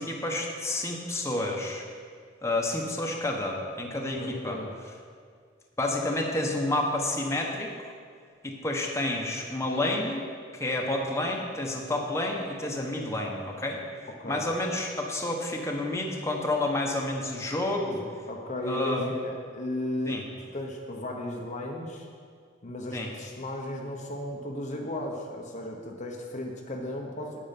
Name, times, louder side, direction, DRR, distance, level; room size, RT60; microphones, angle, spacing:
voice 1, 0.0-1.8 2.4-4.6 5.8-7.7 8.4-10.2 10.5-13.8 14.3-18.0 18.6-19.1 20.1-20.2 22.9-23.1, left 1 dB, 15° left, 0 dB, 1.2 m, -29 dB
voice 2, 4.1-4.7 14.2-14.5 17.8-22.1 22.6-27.4, left 1 dB, 40° left, 0 dB, 1.0 m, -35 dB
9.3 x 8.9 x 5.9 m, 2.1 s
head